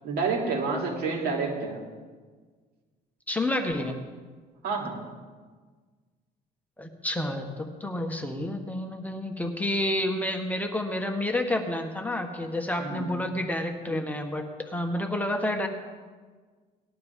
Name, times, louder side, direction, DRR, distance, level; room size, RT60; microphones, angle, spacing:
voice 1, 0.0-1.8 4.6-5.0 12.8-13.1, right 4 dB, 70° right, 0 dB, 3.0 m, -29 dB
voice 2, 3.3-3.9 6.8-15.7, left 1 dB, 10° left, 4 dB, 1.2 m, -29 dB
19.0 x 12.0 x 3.6 m, 1.5 s
cardioid pair, 110°, 17 cm